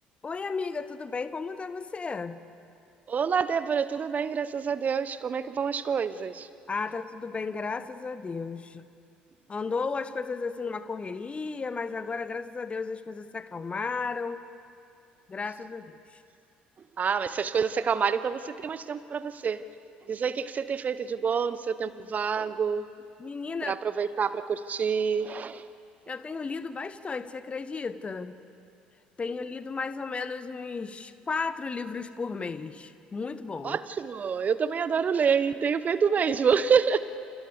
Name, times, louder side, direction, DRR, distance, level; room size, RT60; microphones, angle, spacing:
voice 1, 0.2-2.4 6.7-8.9 9.5-14.4 15.3-16.0 23.2-23.8 26.1-28.4 29.2-33.8, left 4 dB, 25° left, 13 dB, 1.0 m, -34 dB
voice 2, 3.1-6.5 17.0-19.6 20.1-22.8 23.7-25.6 33.6-37.0, right 6 dB, 35° right, 14 dB, 0.9 m, -27 dB
29.0 x 29.0 x 3.5 m, 2.5 s
figure-of-eight pair, 55°, 5 cm